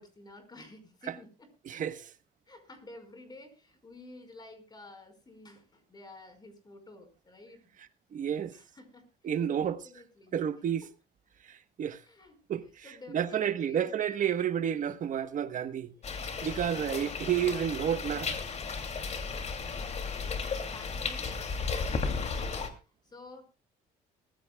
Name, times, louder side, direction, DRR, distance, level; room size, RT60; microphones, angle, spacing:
voice 1, 0.0-1.5 2.4-7.7 8.5-10.5 10.8-10.9 12.0-12.4 12.8-14.0 15.9-16.0 19.7-20.0 20.3-23.4, left 2 dB, 25° left, 5.0 m, -52 dB
voice 2, 1.7-2.1 8.1-8.5 9.2-9.8 10.3-10.8 11.5-12.0 12.5-12.8 13.1-15.9 16.4-18.4, right 9 dB, 50° right, 1.2 m, -30 dB
sound 1, 16.0-22.7, left 5 dB, 40° left, 2.7 m, -34 dB
21.0 x 15.0 x 2.3 m
cardioid pair, 110°, 17 cm